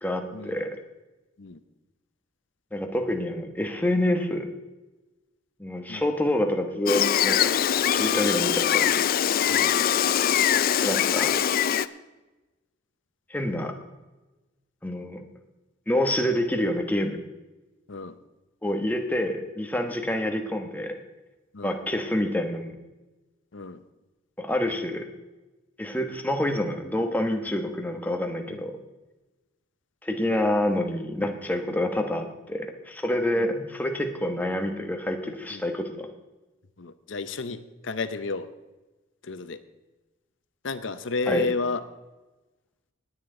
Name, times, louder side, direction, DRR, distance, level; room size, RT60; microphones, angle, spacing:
voice 1, 0.0-0.8 2.7-4.5 5.6-7.5 7.9-9.0 10.8-11.3 13.3-13.7 14.8-15.2 15.9-17.2 18.6-20.9 21.6-22.7 24.4-25.0 25.8-28.7 30.0-36.1 41.3-41.5, left 1 dB, 10° left, 4 dB, 1.1 m, -27 dB
Gull seagull, 6.9-11.9, left 9 dB, 50° left, 0.4 m, -22 dB
voice 2, 36.8-38.5 39.2-39.6 40.6-41.8, left 3 dB, 70° left, 12 dB, 0.8 m, -32 dB
19.0 x 9.0 x 3.8 m, 1.1 s
head